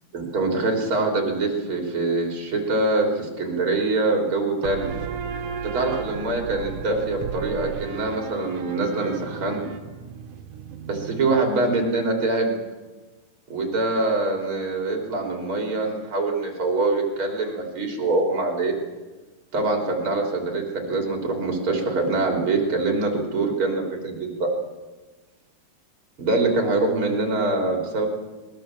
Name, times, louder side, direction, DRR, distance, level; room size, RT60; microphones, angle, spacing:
voice 1, 0.1-4.9 5.6-9.6 10.9-12.6 13.5-18.8 19.5-24.5 26.2-28.1, right 2 dB, 35° right, 2 dB, 3.8 m, -24 dB
sound 1, 4.6-11.9, right 7 dB, 65° right, 2.4 m, -35 dB
21.0 x 20.5 x 7.5 m, 1.2 s
omnidirectional pair, 4.7 m